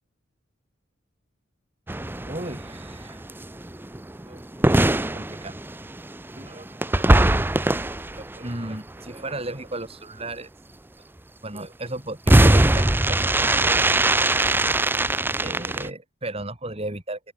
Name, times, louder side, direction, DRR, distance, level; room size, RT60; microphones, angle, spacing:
sound 1, 1.9-9.3 12.3-15.9, right 1 dB, 10° right, 0.6 m, -21 dB
voice 1, 2.3-3.2 4.3-4.4 5.1-5.6 6.4-7.1 8.1-10.5 11.4-13.9 15.4-17.2, right 2 dB, 30° right, 4.5 m, -35 dB
open air
head